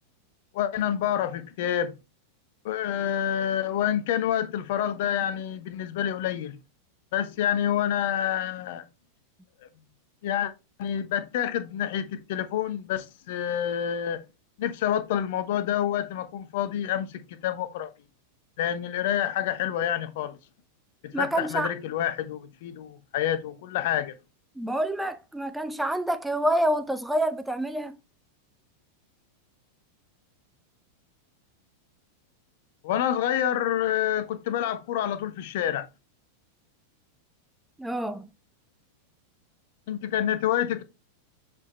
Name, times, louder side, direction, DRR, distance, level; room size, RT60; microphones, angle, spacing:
voice 1, 0.5-1.9 2.6-6.5 7.1-8.9 10.2-10.5 10.8-14.2 14.6-17.9 18.6-20.4 21.0-24.2 32.8-35.9 39.9-40.8, left 10 dB, 50° left, 0.8 m, -28 dB
voice 2, 21.1-21.7 24.6-28.0 37.8-38.3, right 1 dB, 5° right, 0.4 m, -27 dB
7.2 x 4.3 x 3.2 m
figure-of-eight pair, 90°, 0 cm